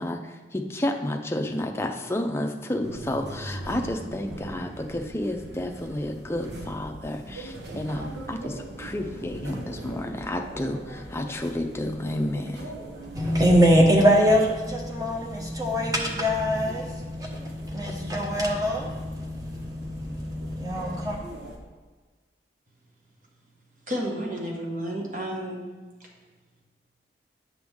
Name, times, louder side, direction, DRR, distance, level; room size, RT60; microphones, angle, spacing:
voice 1, 0.0-12.7, left 1 dB, 15° left, 3 dB, 0.5 m, -31 dB
sound 1, 2.8-21.6, right 1 dB, 85° right, 1.1 m, -41 dB
voice 2, 13.1-21.2, equal, 20° right, 0 dB, 1.0 m, -23 dB
voice 3, 23.9-25.6 26.0-26.1, equal, 50° right, -2 dB, 1.5 m, -31 dB
7.8 x 6.1 x 3.6 m, 1.4 s
head